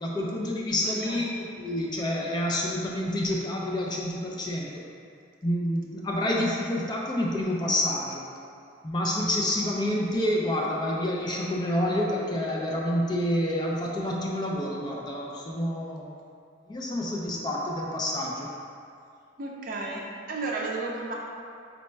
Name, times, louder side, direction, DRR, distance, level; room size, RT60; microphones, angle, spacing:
voice 1, 0.0-4.8 5.4-8.2 8.8-16.1 16.7-18.5, left 1 dB, 20° left, -2 dB, 0.3 m, -28 dB
voice 2, 0.8-1.2 19.4-21.1, right 3 dB, 45° right, -1 dB, 0.4 m, -33 dB
4.0 x 2.2 x 4.3 m, 2.4 s
head